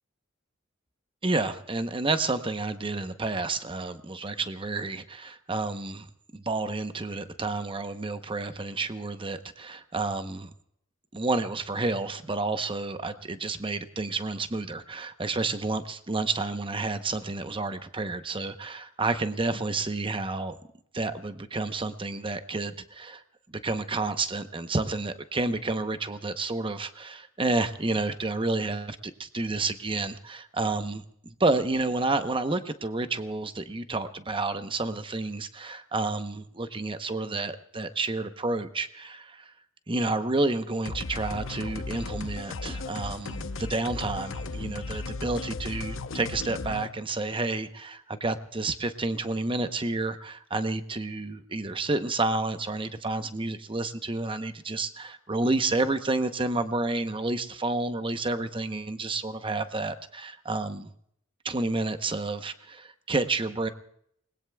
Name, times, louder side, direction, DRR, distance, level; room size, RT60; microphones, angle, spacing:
voice 1, 1.2-6.1 6.3-10.5 11.1-20.6 20.9-23.2 23.5-39.5 39.9-60.9 61.4-63.7, right 3 dB, 25° right, 9 dB, 0.9 m, -30 dB
sound 1, 40.8-46.9, left 3 dB, 80° left, 0.8 m, -36 dB
29.0 x 20.5 x 2.3 m, 0.70 s
head